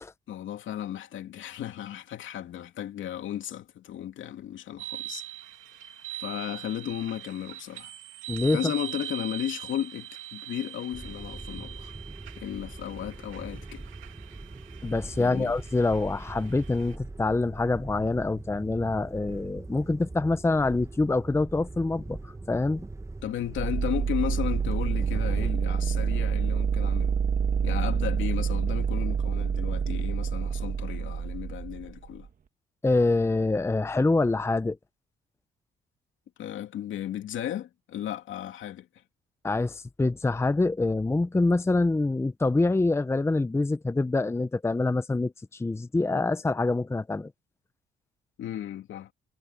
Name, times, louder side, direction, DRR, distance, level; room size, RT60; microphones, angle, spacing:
voice 1, 0.3-5.2 6.2-7.9 8.5-11.9 12.4-13.8 15.2-15.5 23.2-27.2 27.6-32.3 36.4-38.9 48.4-49.1, left 11 dB, 75° left, 2.8 m, -34 dB
sound 1, 4.8-17.0, right 13 dB, 90° right, 2.5 m, -42 dB
voice 2, 8.3-8.6 14.8-22.9 32.8-34.8 39.4-47.3, left 3 dB, 15° left, 0.7 m, -25 dB
sound 2, 10.9-25.5, right 2 dB, 15° right, 1.2 m, -41 dB
sound 3, 23.6-32.3, right 6 dB, 45° right, 1.6 m, -27 dB
cardioid pair, 90°, 20 cm